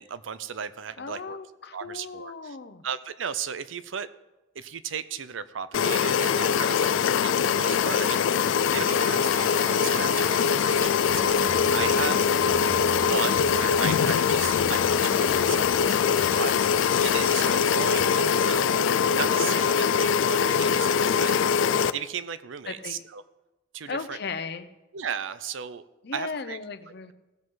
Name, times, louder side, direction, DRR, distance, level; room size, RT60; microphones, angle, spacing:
voice 1, 0.0-1.4 1.7-2.6 2.8-4.1 4.5-12.3 13.0-18.8 19.1-21.4 21.9-23.2 23.7-24.2 24.9-25.8 26.1-26.6, right 7 dB, 80° right, 14 dB, 0.6 m, -35 dB
voice 2, 1.0-2.8 12.3-12.6 17.9-18.0 22.7-23.0 23.9-24.7 26.0-27.1, left 4 dB, 60° left, 10 dB, 0.8 m, -36 dB
sound 1, 5.7-21.9, left 7 dB, 80° left, 0.4 m, -23 dB
sound 2, 7.5-18.5, right 7 dB, 50° right, 0.8 m, -43 dB
sound 3, 11.0-19.1, left 1 dB, 10° left, 1.6 m, -40 dB
17.0 x 7.7 x 3.9 m, 1.0 s
head